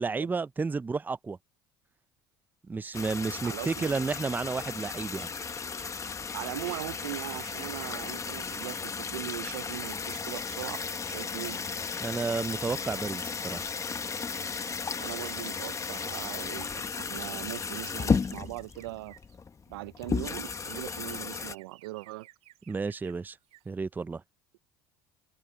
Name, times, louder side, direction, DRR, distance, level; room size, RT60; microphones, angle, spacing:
voice 1, 0.0-1.4 2.7-5.3 12.0-13.7 22.7-23.4 23.7-24.2, right 4 dB, 15° right, 0.5 m, -32 dB
sound 1, 2.9-21.5, left 5 dB, 25° left, 1.2 m, -35 dB
voice 2, 3.4-3.9 6.3-11.6 15.0-19.1 19.7-22.3, right 19 dB, 85° right, 0.5 m, -40 dB
sound 2, 5.1-19.4 20.0-23.2 23.4-23.7, right 16 dB, 60° right, 3.0 m, -57 dB
open air
supercardioid pair, 85°, 12 cm